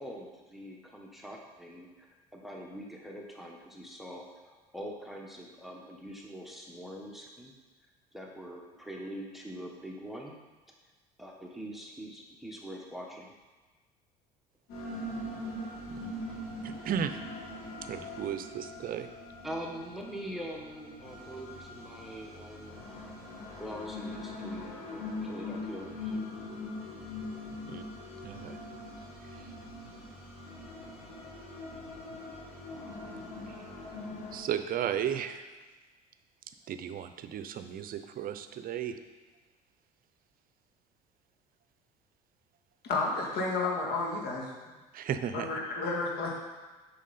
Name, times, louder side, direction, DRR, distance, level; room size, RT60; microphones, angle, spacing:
voice 1, 0.0-2.1 2.3-7.5 8.1-10.4 11.2-13.3 19.4-22.8 23.6-26.2, equal, ahead, -1 dB, 1.3 m, -43 dB
sound 1, 14.7-34.4, left 2 dB, 80° left, 2.0 m, -42 dB
voice 2, 16.6-17.2 17.9-19.1 27.7-27.8 28.2-28.6 29.2-29.5 33.5-33.7 34.3-35.5 36.7-39.0 44.9-45.5, right 9 dB, 50° right, 10 dB, 0.6 m, -35 dB
voice 3, 42.8-44.5 45.3-46.4, left 3 dB, 60° left, -1 dB, 2.0 m, -31 dB
7.3 x 5.7 x 4.2 m, 1.3 s
hypercardioid pair, 70°, 19 cm